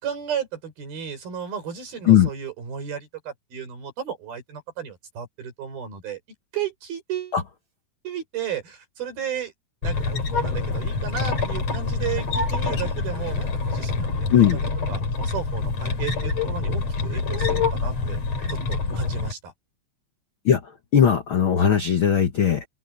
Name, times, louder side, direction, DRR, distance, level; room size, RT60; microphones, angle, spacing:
voice 1, 0.0-6.2 6.5-7.4 8.0-9.5 9.8-14.5 14.9-18.2 18.5-19.5, right 8 dB, 80° right, 7.5 m, -34 dB
sound 1, 9.8-19.3, left 4 dB, 45° left, 5.5 m, -26 dB
voice 2, 20.9-22.6, left 9 dB, 80° left, 1.1 m, -18 dB
open air
omnidirectional pair, 4.2 m